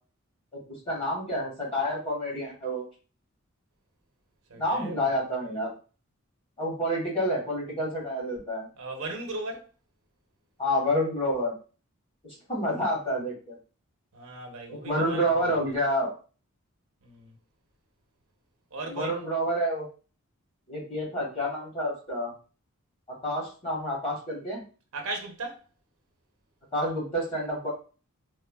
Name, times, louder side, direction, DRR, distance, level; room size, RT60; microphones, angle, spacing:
voice 1, 0.9-2.8 4.5-5.7 6.6-8.7 10.6-11.5 12.5-13.6 14.7-16.1 18.9-19.9 20.7-22.3 23.2-24.6 26.7-27.7, equal, 25° left, 1.0 m, -28 dB
voice 2, 4.5-4.9 8.8-9.7 14.1-15.5 17.0-17.3 18.7-19.2 24.9-25.6, right 2 dB, 75° right, 0.6 m, -37 dB
3.0 x 2.0 x 2.2 m
head